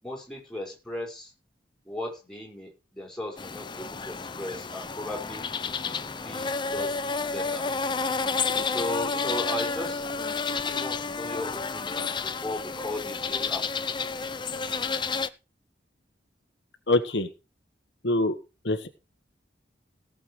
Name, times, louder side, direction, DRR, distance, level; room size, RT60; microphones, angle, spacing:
voice 1, 0.0-1.3 1.8-5.4 5.8-7.7 8.7-10.0 10.4-13.6, left 1 dB, 5° left, -3 dB, 5.3 m, -37 dB
sound 1, 3.4-15.3, left 4 dB, 25° left, 0.6 m, -30 dB
voice 2, 16.9-17.3 18.0-18.3 18.6-18.9, left 2 dB, 75° left, 7 dB, 1.4 m, -24 dB
18.0 x 6.9 x 4.7 m, 0.30 s
head